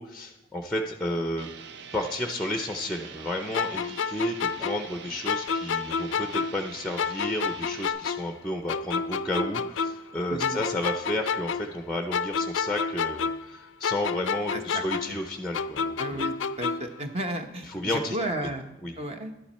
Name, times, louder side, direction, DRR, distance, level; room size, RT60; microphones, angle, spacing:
voice 1, 0.0-1.5 1.9-16.3 17.7-18.2 18.8-18.9, left 1 dB, 5° left, 5 dB, 0.6 m, -32 dB
sound 1, 1.4-7.9, right 7 dB, 60° right, 0.5 m, -44 dB
sound 2, 3.5-6.7 7.0-10.1 10.4-13.6 13.8-17.0, left 6 dB, 65° left, 0.4 m, -30 dB
voice 2, 14.5-15.2 16.0-18.7 19.0-19.3, right 1 dB, 30° right, 5 dB, 0.9 m, -33 dB
11.5 x 10.5 x 4.3 m, 0.95 s
head